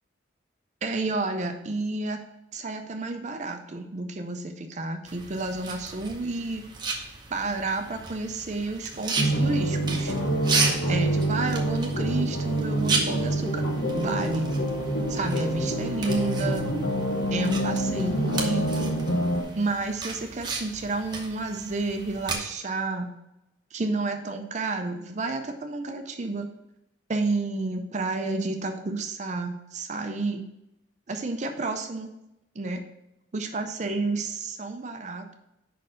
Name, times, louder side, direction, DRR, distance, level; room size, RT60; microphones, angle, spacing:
voice 1, 0.8-2.2 2.5-6.6 7.3-10.1 10.9-13.6 13.9-14.5 15.1-16.7 17.3-18.9 19.6-23.1 23.7-26.5 27.1-30.5 31.1-32.1 32.6-32.8 33.3-35.3, right 3 dB, 35° right, 6 dB, 0.5 m, -30 dB
sound 1, 5.1-22.4, right 4 dB, 20° right, 0.9 m, -34 dB
sound 2, 9.2-19.4, right 1 dB, 90° left, 1.1 m, -26 dB
5.4 x 4.4 x 6.2 m, 0.88 s
head